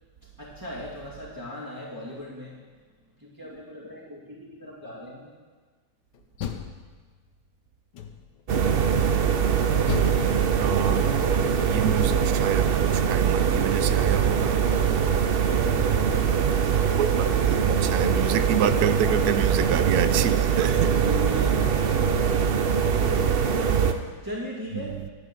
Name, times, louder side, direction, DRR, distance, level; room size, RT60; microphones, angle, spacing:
voice 1, 0.4-2.7 3.2-5.3 14.9-16.6 19.5-20.2 20.7-25.1, left 1 dB, 10° right, 2.4 m, -39 dB
Door, 6.1-7.4 7.9-8.5 9.9-11.8, left 9 dB, 80° left, 1.5 m, -36 dB
sound 1, 8.5-23.9, right 7 dB, 55° right, 0.6 m, -22 dB
voice 2, 10.6-11.2 11.7-14.6 17.0-20.9, right 10 dB, 75° right, 1.1 m, -28 dB
12.0 x 8.4 x 7.0 m
omnidirectional pair, 1.8 m